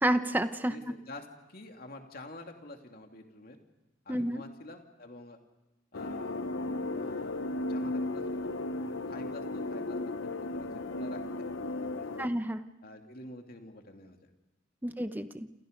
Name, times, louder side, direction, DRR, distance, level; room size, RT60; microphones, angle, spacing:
voice 1, 0.0-0.8 4.1-4.4 12.2-12.6 14.8-15.5, right 1 dB, 10° right, 10 dB, 0.9 m, -29 dB
voice 2, 0.7-3.6 4.0-5.4 5.9-6.5 6.9-7.4 7.7-8.6 9.1-12.3 12.8-14.2, left 2 dB, 50° left, 4 dB, 2.6 m, -48 dB
sound 1, 5.9-12.3, left 2 dB, 80° left, 0.9 m, -35 dB
28.5 x 28.0 x 5.2 m, 0.97 s
head